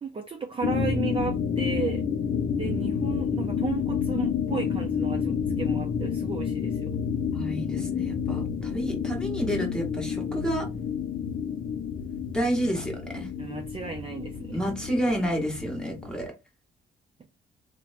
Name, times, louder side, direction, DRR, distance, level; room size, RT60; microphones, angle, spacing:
voice 1, 0.0-2.0 2.6-6.9 13.4-14.7, right 5 dB, 25° right, 0.5 m, -34 dB
sound 1, 0.6-16.3, left 7 dB, 45° left, 0.4 m, -29 dB
voice 2, 7.3-10.7 12.3-13.3 14.5-16.3, equal, 5° left, 1.1 m, -29 dB
3.0 x 2.1 x 2.5 m
cardioid pair, 90°, 20 cm